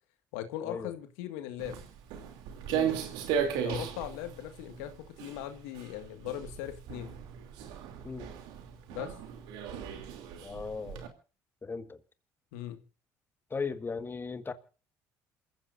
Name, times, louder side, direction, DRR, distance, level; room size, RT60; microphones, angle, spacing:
voice 1, 0.3-1.8 3.4-7.2 8.9-9.1 12.5-12.8, left 12 dB, 85° left, 1.9 m, -39 dB
Walk footsteps, 1.6-11.1, right 8 dB, 75° right, 3.0 m, -36 dB
voice 2, 10.4-11.0 11.6-12.0 13.5-14.5, left 4 dB, 30° left, 1.7 m, -37 dB
28.0 x 15.5 x 2.6 m
hypercardioid pair, 65°, 8 cm